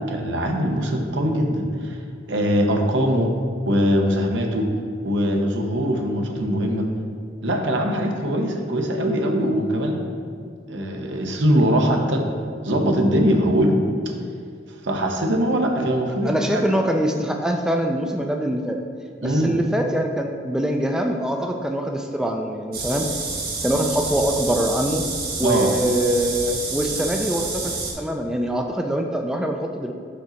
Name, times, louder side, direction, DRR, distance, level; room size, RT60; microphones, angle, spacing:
voice 1, 0.1-2.0 2.3-3.3 3.7-4.7 5.0-6.9 7.4-10.0 10.7-12.3 12.6-13.8 14.8-16.7 19.2-19.5 25.4-25.7, equal, 80° right, 2 dB, 0.8 m, -21 dB
voice 2, 16.2-18.8 19.2-23.1 23.6-25.0 25.4-29.9, right 1 dB, 5° right, 2 dB, 0.3 m, -24 dB
sound 1, 22.7-27.9, right 3 dB, 55° right, 1.2 m, -29 dB
5.2 x 3.9 x 5.6 m, 2.3 s
head